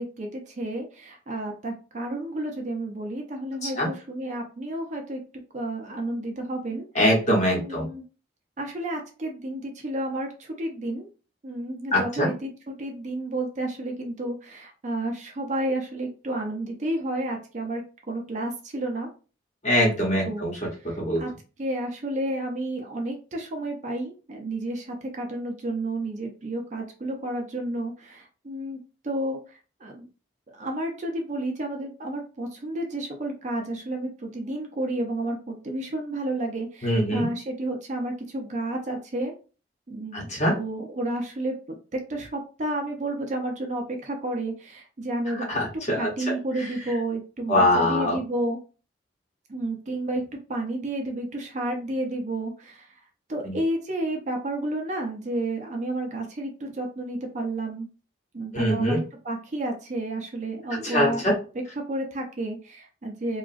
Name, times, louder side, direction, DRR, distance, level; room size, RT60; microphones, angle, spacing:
voice 1, 0.0-5.2 5.5-6.9 7.5-8.0 8.6-11.1 11.4-19.1 20.2-20.5 20.8-21.3 21.6-28.8 29.0-30.1 30.5-39.3 39.9-40.3 40.6-41.5 41.9-45.6 46.0-48.6 49.5-50.2 50.5-53.0 53.3-57.9 58.3-61.3 61.9-63.4, right 1 dB, 40° right, 2 dB, 0.5 m, -31 dB
voice 2, 6.9-7.9 11.9-12.3 19.6-20.5 21.0-21.2 36.8-37.3 40.1-40.6 45.3-46.1 47.5-48.2 53.4-53.5 58.5-59.0 60.8-61.3, left 1 dB, 35° left, -2 dB, 1.0 m, -23 dB
2.8 x 2.4 x 2.5 m, 0.35 s
head